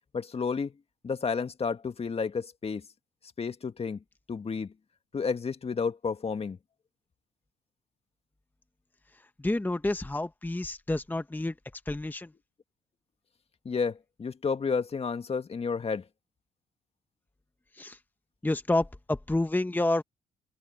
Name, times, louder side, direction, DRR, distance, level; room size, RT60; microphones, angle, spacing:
voice 1, 0.1-0.7 1.0-2.8 3.4-4.0 4.3-4.7 5.1-6.6 13.7-16.0, left 5 dB, 40° left, 2.0 m, -31 dB
voice 2, 9.4-12.3 17.7-18.0 18.4-20.0, left 2 dB, 10° left, 1.3 m, -29 dB
supercardioid pair, 60°, 16 cm